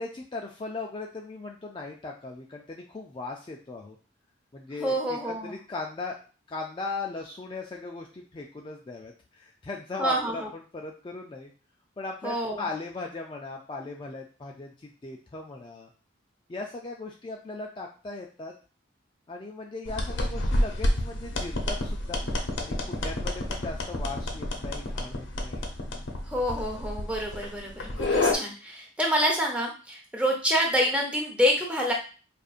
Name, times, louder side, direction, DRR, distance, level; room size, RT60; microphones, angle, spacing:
voice 1, 0.0-4.0 4.5-6.2 6.5-11.5 12.0-15.9 16.5-18.5 19.3-22.2 22.5-25.6, left 3 dB, 25° left, 1 dB, 0.3 m, -38 dB
voice 2, 4.8-5.5 10.0-10.5 12.2-12.6 26.3-31.9, equal, 5° right, 0 dB, 0.7 m, -27 dB
sound 1, 19.9-28.3, left 1 dB, 75° left, 0.7 m, -29 dB
4.9 x 2.5 x 2.4 m, 0.36 s
head